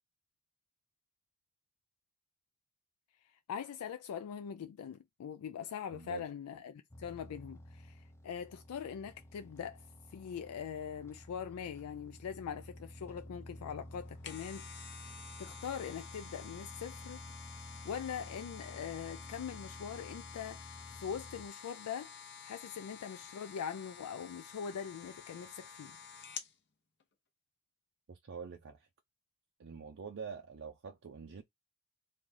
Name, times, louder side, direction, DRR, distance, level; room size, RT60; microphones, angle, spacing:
voice 1, 3.2-9.8 10.1-17.2 17.8-26.0, left 7 dB, 75° left, 0.3 m, -42 dB
voice 2, 5.9-6.2 28.1-28.9 29.6-31.4, right 6 dB, 55° right, 0.5 m, -46 dB
sound 1, 6.9-21.5, equal, 10° left, 0.5 m, -52 dB
sound 2, 14.0-26.5 27.0-27.1, left 7 dB, 50° left, 0.8 m, -50 dB
3.8 x 2.3 x 3.2 m
head